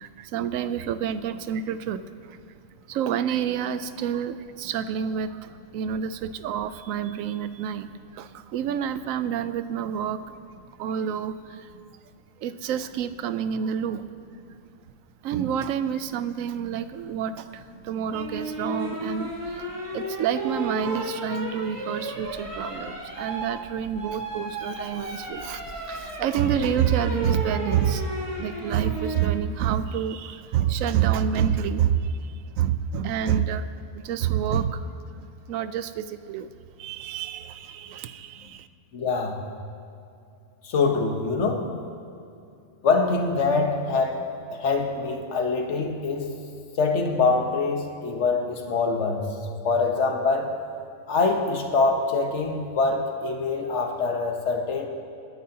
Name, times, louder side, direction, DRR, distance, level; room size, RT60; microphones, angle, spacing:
voice 1, 0.0-2.4 2.9-10.2 10.8-11.7 12.4-14.1 15.2-33.7 33.9-36.5 36.8-38.7, right 8 dB, 75° right, 12 dB, 0.9 m, -28 dB
sound 1, 18.1-29.3 31.0-31.4, right 1 dB, 20° right, 1.8 m, -34 dB
voice 2, 38.9-39.4 40.6-41.7 42.8-44.2 44.5-46.3 46.8-49.3 49.6-50.5 51.1-54.9, left 4 dB, 55° left, 4 dB, 1.3 m, -24 dB
22.0 x 9.4 x 2.8 m, 2.6 s
omnidirectional pair, 1.5 m